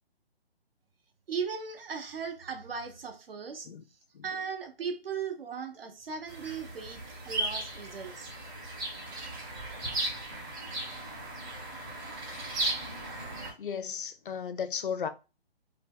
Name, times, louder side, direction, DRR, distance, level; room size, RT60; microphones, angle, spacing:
voice 1, 1.3-3.7 4.2-8.3, right 6 dB, 65° right, 0.8 m, -37 dB
sound 1, 6.3-13.5, right 2 dB, 20° right, 0.7 m, -36 dB
voice 2, 13.6-15.1, left 7 dB, 55° left, 0.5 m, -35 dB
2.7 x 2.1 x 3.6 m
figure-of-eight pair, 140°, 32 cm